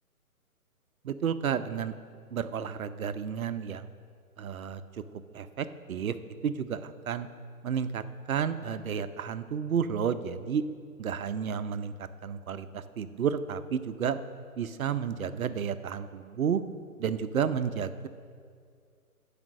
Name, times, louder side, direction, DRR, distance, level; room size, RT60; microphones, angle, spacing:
voice 1, 1.0-1.9 2.3-3.9 4.4-5.0 5.3-6.2 6.4-7.3 7.6-10.6 11.0-14.2 14.6-16.6 17.0-18.1, right 7 dB, 70° right, 11 dB, 0.8 m, -31 dB
14.5 x 5.2 x 6.3 m, 2.2 s
figure-of-eight pair, 140°, 44 cm